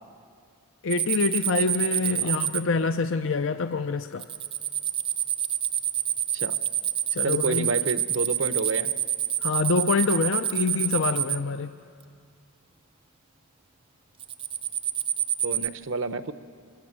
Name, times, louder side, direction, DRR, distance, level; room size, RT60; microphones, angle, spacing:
voice 1, 0.8-4.3 7.1-7.7 9.4-11.7, left 4 dB, 60° left, 9 dB, 0.5 m, -26 dB
sound 1, 0.9-2.6 4.2-11.4 14.2-15.7, right 10 dB, 25° right, 0.6 m, -27 dB
voice 2, 7.2-8.9 15.4-16.3, right 3 dB, 60° right, 12 dB, 0.8 m, -29 dB
26.0 x 21.5 x 7.6 m, 2.2 s
head